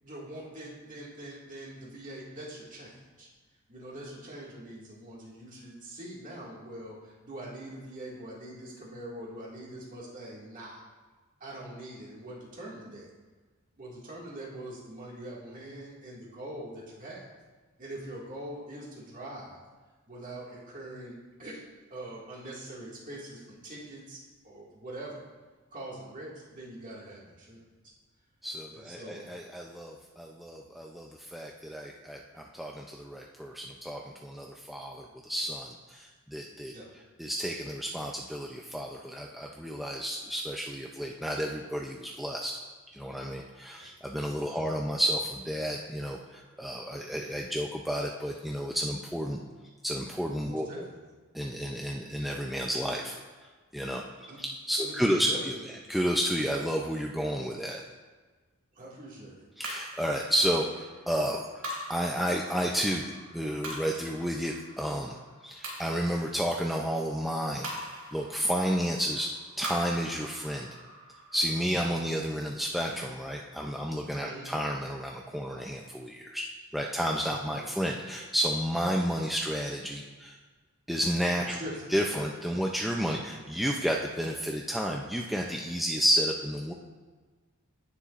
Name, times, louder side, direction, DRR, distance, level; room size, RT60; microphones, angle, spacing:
voice 1, 0.0-3.3 3.7-10.8 11.4-13.1 13.8-17.2 17.8-19.6 20.1-21.6 21.9-25.2 25.7-27.6 28.7-29.2 36.7-36.9 43.7-43.9 44.4-44.7 50.5-51.0 54.3-54.4 54.8-55.4 58.7-59.5 74.2-74.5 77.3-77.6 81.4-81.9, right 1 dB, 35° right, -5 dB, 2.0 m, -43 dB
voice 2, 28.4-36.7 37.2-42.5 42.9-49.4 49.8-50.8 51.3-53.2 53.7-54.0 54.4-55.5 55.9-57.8 59.6-61.6 61.9-63.1 63.3-65.2 65.4-67.7 68.1-69.3 69.6-70.7 71.3-76.4 76.7-80.4 80.9-81.6 81.9-86.7, equal, ahead, -1 dB, 0.4 m, -31 dB
sound 1, 59.6-74.1, right 1 dB, 65° right, 2.6 m, -44 dB
16.5 x 6.9 x 2.5 m, 1.3 s
head